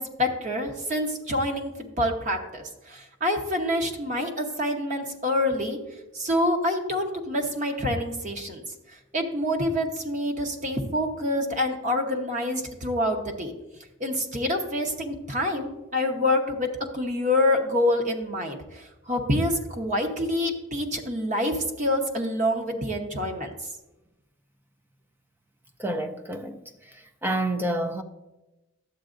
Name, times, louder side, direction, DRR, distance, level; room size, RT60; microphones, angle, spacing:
voice 1, 0.0-5.8 6.1-8.6 8.9-13.5 14.0-16.7 16.9-23.5, left 1 dB, 35° right, 1.0 m, -27 dB
voice 2, 25.8-26.6 27.2-28.0, right 1 dB, 10° right, 0.4 m, -28 dB
12.0 x 8.1 x 2.6 m
head